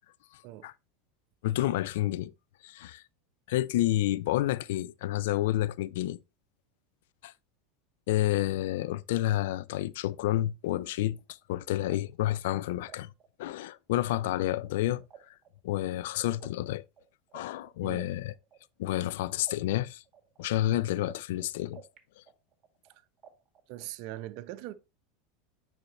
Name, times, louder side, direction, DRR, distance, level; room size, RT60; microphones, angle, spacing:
voice 1, 0.3-0.7 1.4-2.3 2.6-3.0 3.5-6.2 7.2-7.3 8.1-11.2 11.5-13.1 13.4-15.0 15.6-16.8 17.3-18.3 18.8-20.0 20.4-21.8, left 14 dB, 75° left, 0.4 m, -29 dB
sound 1, 11.2-14.2 14.4-19.1 19.5-22.0 22.3-23.9, right 10 dB, 35° right, 1.9 m, -54 dB
voice 2, 23.7-24.7, right 15 dB, 60° right, 0.7 m, -41 dB
9.0 x 4.3 x 3.0 m
hypercardioid pair, 105°, 0 cm